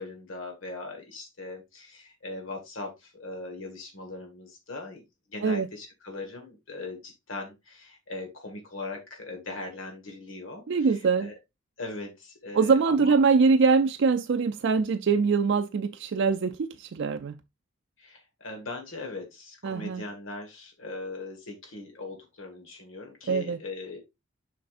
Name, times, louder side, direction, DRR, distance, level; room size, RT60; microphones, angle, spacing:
voice 1, 0.0-5.0 5.3-10.6 11.2-11.3 11.8-13.2 18.0-24.0, left 2 dB, 70° left, 1.6 m, -40 dB
voice 2, 10.7-11.3 12.5-17.4 19.6-20.0 23.3-23.6, right 5 dB, 60° right, 0.4 m, -23 dB
7.6 x 5.7 x 2.5 m
head